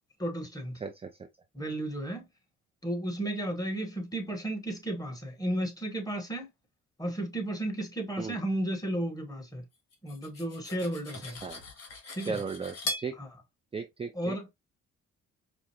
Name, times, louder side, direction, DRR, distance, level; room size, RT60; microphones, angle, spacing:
voice 1, 0.2-0.8 1.5-2.3 2.8-6.5 7.0-9.6 10.0-11.4 12.1-12.4 13.2-13.3 14.1-14.5, right 1 dB, 10° left, 1.4 m, -33 dB
voice 2, 0.8-1.1 8.2-8.4 11.4-11.6 12.3-13.1 13.7-14.4, right 5 dB, 20° right, 0.5 m, -36 dB
Cutlery silverware, 9.9-13.1, left 2 dB, 55° left, 1.5 m, -39 dB
5.0 x 2.1 x 3.0 m
cardioid pair, 90°, 30 cm